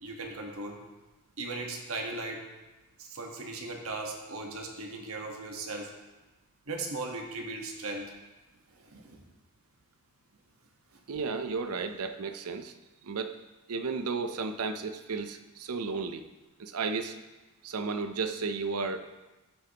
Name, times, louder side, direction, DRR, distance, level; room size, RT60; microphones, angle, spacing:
voice 1, 0.0-0.8 1.4-2.4 3.1-5.9 6.7-8.0, right 2 dB, 65° right, 1 dB, 1.4 m, -37 dB
voice 2, 11.1-12.7 13.0-13.4 13.7-16.2 16.6-17.2 17.6-19.0, right 4 dB, 85° right, 9 dB, 0.6 m, -33 dB
13.5 x 6.7 x 2.9 m, 1.1 s
head